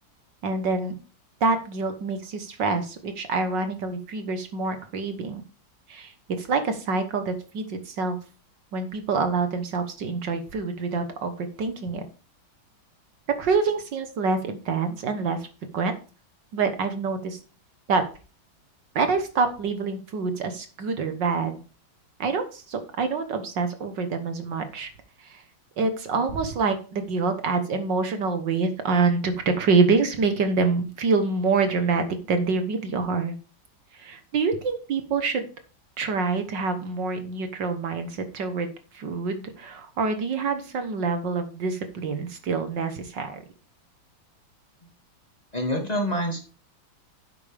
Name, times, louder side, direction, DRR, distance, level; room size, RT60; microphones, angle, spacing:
voice 1, 0.4-1.0 1.4-5.4 5.9-8.2 8.7-12.1 13.4-15.5 15.7-16.0 16.5-17.4 17.9-18.0 19.0-21.6 22.2-24.9 25.2-25.4 25.8-33.4 33.9-35.5 36.0-43.4, right 4 dB, 65° right, 8 dB, 1.9 m, -26 dB
voice 2, 45.5-46.4, equal, 20° left, 2 dB, 2.2 m, -26 dB
10.5 x 8.4 x 3.5 m, 0.34 s
omnidirectional pair, 2.2 m